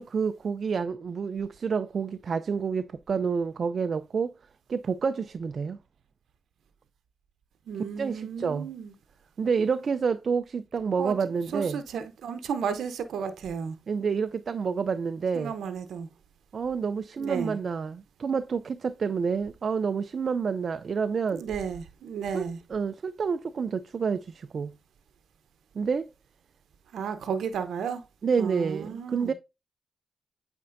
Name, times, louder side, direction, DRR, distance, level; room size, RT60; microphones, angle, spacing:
voice 1, 0.0-4.3 4.7-5.8 8.0-8.7 9.4-11.8 13.9-15.5 16.5-21.4 22.3-24.7 25.8-26.1 28.2-29.3, right 5 dB, 60° right, 0.4 m, -28 dB
voice 2, 7.7-8.9 11.0-11.1 11.5-13.8 15.3-16.1 17.2-17.6 21.3-22.6 26.9-28.0 28.4-29.3, right 7 dB, 80° right, 0.8 m, -33 dB
8.5 x 4.4 x 2.6 m
supercardioid pair, 45°, 0 cm